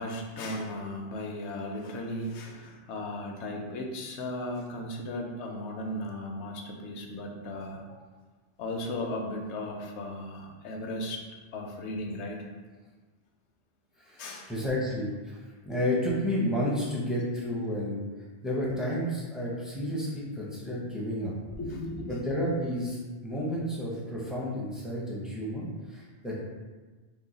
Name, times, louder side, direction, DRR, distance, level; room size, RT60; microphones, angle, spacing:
voice 1, 0.0-8.0 8.6-11.2 11.5-12.5 14.2-14.5 21.6-22.2, left 1 dB, 80° left, 1 dB, 0.9 m, -36 dB
voice 2, 14.1-15.4 15.7-18.0 18.4-21.3 22.1-26.4, equal, ahead, -6 dB, 0.4 m, -31 dB
3.0 x 2.2 x 3.9 m, 1.3 s
omnidirectional pair, 1.2 m